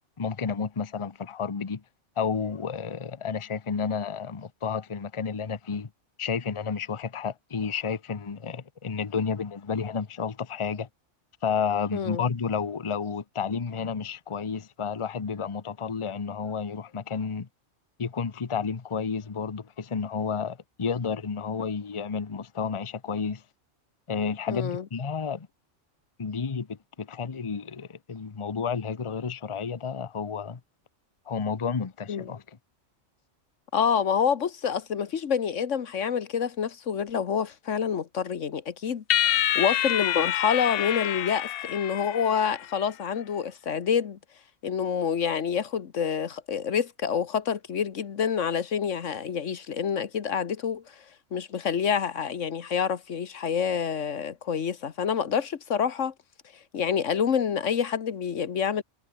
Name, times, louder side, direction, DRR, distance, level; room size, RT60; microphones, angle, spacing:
voice 1, 0.2-1.8 2.2-5.9 6.2-10.9 11.4-17.5 18.0-23.4 24.1-25.5 26.2-30.6 31.3-32.4, left 6 dB, 30° left, 0.8 m, -31 dB
voice 2, 11.9-12.2 24.5-24.8 32.1-32.3 33.7-44.2 44.6-51.0 51.3-56.1 56.7-58.8, left 7 dB, 80° left, 1.5 m, -27 dB
sound 1, 39.1-42.7, left 12 dB, 60° left, 0.7 m, -27 dB
omnidirectional pair, 1.2 m